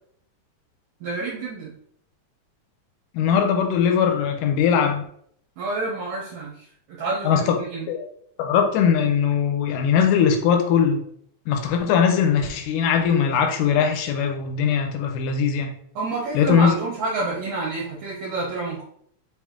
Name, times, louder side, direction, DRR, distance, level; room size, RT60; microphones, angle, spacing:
voice 1, 1.0-1.7 5.6-7.9 16.0-18.8, right 3 dB, 70° right, -5 dB, 2.0 m, -28 dB
voice 2, 3.1-5.0 7.2-7.4 7.9-8.1 8.4-11.0 11.5-15.7 16.3-16.8, left 7 dB, 80° left, 4 dB, 2.1 m, -20 dB
5.6 x 2.6 x 3.5 m, 0.66 s
omnidirectional pair, 3.8 m